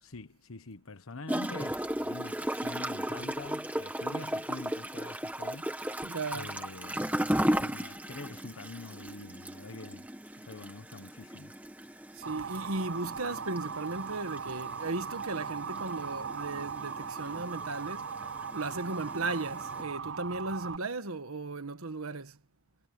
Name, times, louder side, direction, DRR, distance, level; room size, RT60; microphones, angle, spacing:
voice 1, 0.0-6.0 6.3-10.1 10.4-11.6, left 3 dB, 80° left, 1.1 m, -45 dB
Gurgling / Toilet flush, 1.3-19.8, right 1 dB, 5° right, 1.5 m, -36 dB
voice 2, 6.0-6.5 12.2-18.1 18.5-22.4, right 3 dB, 90° right, 1.5 m, -36 dB
Motor vehicle (road) / Siren, 12.2-20.8, right 6 dB, 55° right, 0.5 m, -39 dB
head